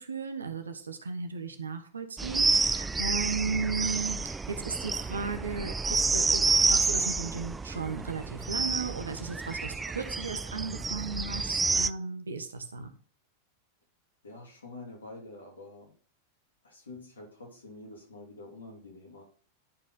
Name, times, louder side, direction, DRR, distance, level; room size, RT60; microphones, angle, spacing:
voice 1, 0.0-12.9, right 4 dB, 75° right, 1.1 m, -35 dB
sound 1, 2.2-11.9, right 4 dB, 10° right, 0.3 m, -29 dB
voice 2, 14.2-15.9 16.6-19.2, left 2 dB, 70° left, 3.1 m, -47 dB
11.0 x 5.1 x 3.9 m
figure-of-eight pair, 90°, 0 cm